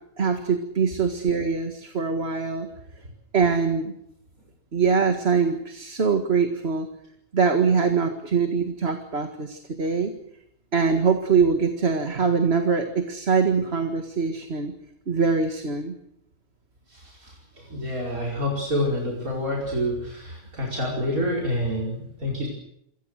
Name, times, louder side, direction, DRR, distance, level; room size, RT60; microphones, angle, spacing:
voice 1, 0.2-2.7 3.3-3.9 4.7-6.9 7.3-10.1 10.7-14.7 15.1-16.0, right 5 dB, 45° right, 5 dB, 2.1 m, -23 dB
voice 2, 16.9-22.5, left 1 dB, 80° right, -1 dB, 5.5 m, -28 dB
28.0 x 25.0 x 6.6 m, 0.79 s
omnidirectional pair, 1.5 m